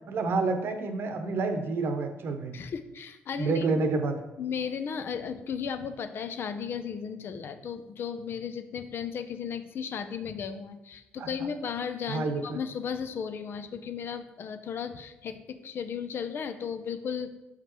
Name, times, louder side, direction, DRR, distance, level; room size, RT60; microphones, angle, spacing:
voice 1, 0.1-2.5 3.4-4.2 11.2-11.5 12.1-12.6, right 3 dB, 55° right, 6 dB, 1.0 m, -29 dB
voice 2, 2.5-3.7 4.4-17.3, left 7 dB, 55° left, 8 dB, 0.7 m, -35 dB
7.4 x 4.9 x 3.1 m, 0.96 s
hypercardioid pair, 60°, 5 cm